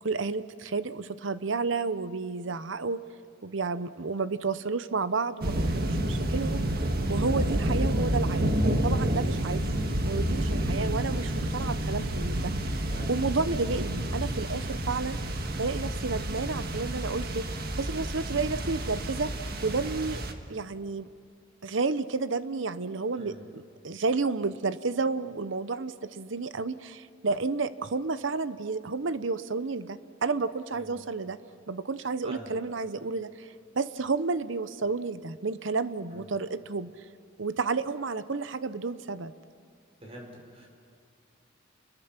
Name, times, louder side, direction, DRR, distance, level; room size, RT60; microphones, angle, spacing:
voice 1, 0.0-3.0 3.4-6.7 7.1-8.5 8.8-9.7 10.1-15.2 15.6-17.5 17.8-19.3 19.6-20.2 20.5-21.1 21.6-31.4 31.7-36.9 37.4-39.3, right 4 dB, 70° right, 14 dB, 0.8 m, -31 dB
sound 1, 5.4-20.3, right 1 dB, 50° right, 1.6 m, -29 dB
voice 2, 32.2-32.6 36.1-36.3 40.0-40.3 40.5-40.7, right 1 dB, 30° right, 0 dB, 5.4 m, -45 dB
29.0 x 22.0 x 5.9 m, 2.4 s
head